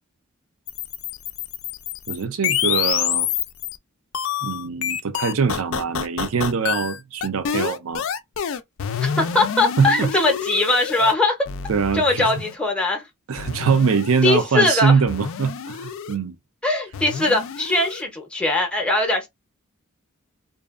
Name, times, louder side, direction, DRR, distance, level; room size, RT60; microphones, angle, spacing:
sound 1, 0.7-3.8 4.1-11.1 11.5-12.6 13.4-14.5 15.1-16.2 16.9-18.0, left 8 dB, 65° left, 0.3 m, -27 dB
voice 1, 2.1-3.3 4.4-8.0 9.8-10.1 11.7-12.3 13.3-16.4, right 5 dB, 70° right, 0.5 m, -22 dB
voice 2, 9.0-11.4 11.9-13.0 14.2-15.0 16.6-19.3, left 2 dB, 5° left, 0.6 m, -21 dB
2.5 x 2.3 x 2.4 m
head